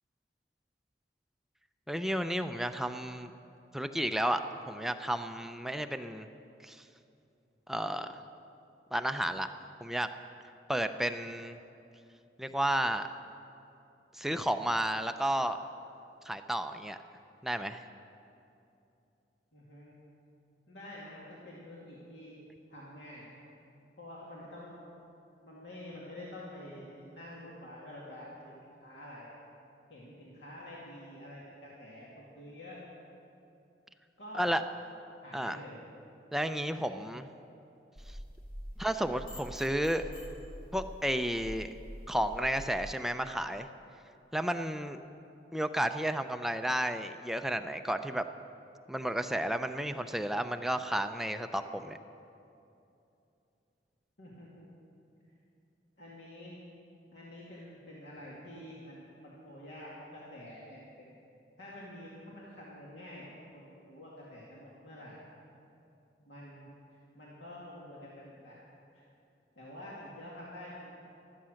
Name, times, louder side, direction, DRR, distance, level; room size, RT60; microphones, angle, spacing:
voice 1, 1.9-3.3 3.7-4.4 4.7-6.3 6.6-6.8 7.7-8.2 8.9-9.5 9.8-10.1 10.7-11.6 12.4-13.1 14.2-15.6 16.3-17.0 17.4-17.8 34.3-34.6 35.3-35.6 36.3-37.3 38.8-40.1 40.7-41.7 42.1-43.7 44.3-45.0 45.5-48.2 48.9-52.0, right 1 dB, ahead, 7 dB, 0.4 m, -32 dB
voice 2, 19.5-20.0 20.7-22.4 22.7-23.3 24.0-24.8 25.4-28.5 28.8-29.3 29.9-32.8 34.2-34.5 35.2-35.8 54.2-54.7 56.0-56.6 57.1-61.1 61.6-63.3 63.5-65.2 66.2-66.7 67.1-68.6 68.9-69.0 69.5-70.9, left 1 dB, 90° left, -6 dB, 2.4 m, -48 dB
sound 1, 38.0-42.8, equal, 55° left, 2.2 m, -46 dB
14.5 x 13.0 x 6.4 m, 2.8 s
head